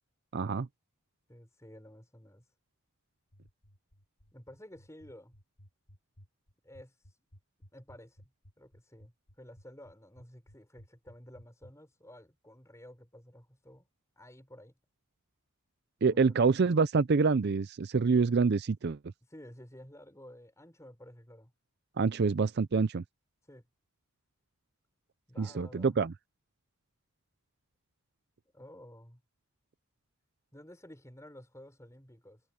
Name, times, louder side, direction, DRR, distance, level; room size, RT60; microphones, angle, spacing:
voice 1, 0.3-0.7 16.0-19.0 22.0-23.0 25.4-26.1, right 4 dB, 50° right, 0.5 m, -26 dB
voice 2, 1.3-2.4 4.3-5.3 6.6-7.0 7.7-8.3 8.6-13.9 14.2-14.7 16.0-16.2 19.3-21.5 23.5-23.6 25.3-26.0 28.5-29.2 30.5-32.4, left 1 dB, 15° left, 6.0 m, -52 dB
sound 1, 3.3-11.7, equal, 90° left, 6.9 m, -57 dB
head